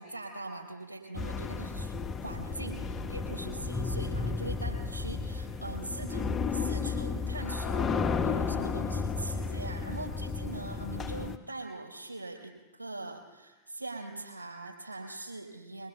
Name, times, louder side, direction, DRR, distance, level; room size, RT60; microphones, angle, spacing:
voice 1, 0.0-1.9 2.2-7.9 8.2-15.9, right 2 dB, 85° right, 2 dB, 4.9 m, -42 dB
sound 1, 1.1-11.4, left 4 dB, 25° left, 1.3 m, -33 dB
22.5 x 22.5 x 5.8 m, 1.2 s
figure-of-eight pair, 90°, 0 cm